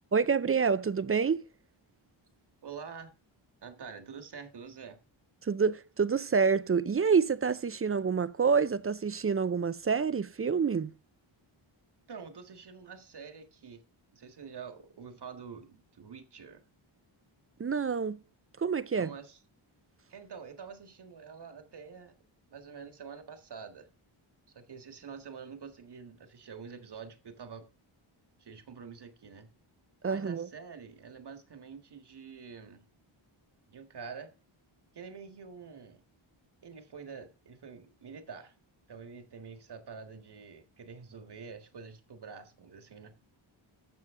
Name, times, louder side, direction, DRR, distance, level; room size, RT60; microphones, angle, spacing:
voice 1, 0.1-1.4 5.4-10.9 17.6-18.2 18.6-19.1 30.0-30.5, right 5 dB, 30° right, 0.4 m, -27 dB
voice 2, 2.6-3.1 3.6-5.0 12.1-13.8 14.1-16.6 18.9-19.4 20.1-22.2 22.5-23.9 24.5-27.7 28.4-29.5 30.1-32.8 33.7-34.3 34.9-36.0 36.6-38.5 38.9-43.1, right 6 dB, 50° right, 1.7 m, -47 dB
12.5 x 7.6 x 3.7 m
wide cardioid pair, 155°, 50 cm